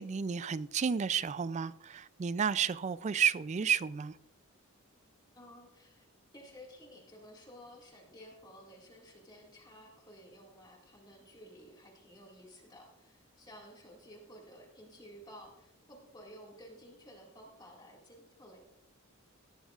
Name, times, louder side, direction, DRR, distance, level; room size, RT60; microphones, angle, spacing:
voice 1, 0.0-4.1, right 7 dB, 30° right, 0.3 m, -31 dB
voice 2, 5.3-6.1 6.3-18.6, equal, 20° left, 2.0 m, -54 dB
18.5 x 12.5 x 2.4 m
head